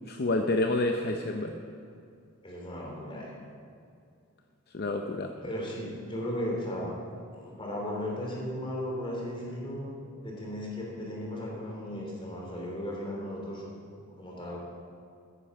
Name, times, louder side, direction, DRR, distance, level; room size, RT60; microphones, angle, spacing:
voice 1, 0.1-1.6 4.7-5.3, left 2 dB, 45° left, 4 dB, 0.6 m, -28 dB
voice 2, 2.4-3.3 5.4-7.0 7.3-9.9 10.2-14.6, equal, 25° left, -2 dB, 2.9 m, -36 dB
14.5 x 9.9 x 5.4 m, 2.3 s
head